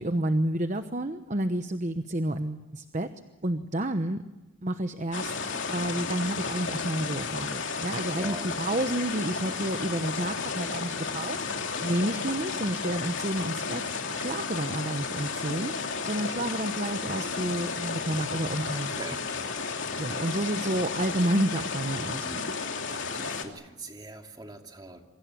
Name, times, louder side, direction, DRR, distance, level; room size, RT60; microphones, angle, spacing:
voice 1, 0.0-3.1 3.4-4.2 4.6-5.4 5.7-19.0 20.0-22.3, right 1 dB, 35° right, 8 dB, 1.0 m, -30 dB
sound 1, 5.1-23.4, left 5 dB, 60° left, 3.0 m, -33 dB
voice 2, 8.1-8.6 18.9-19.2 22.1-22.5 22.9-25.0, right 2 dB, 20° right, 3 dB, 2.6 m, -42 dB
27.5 x 24.0 x 7.5 m, 1.1 s
head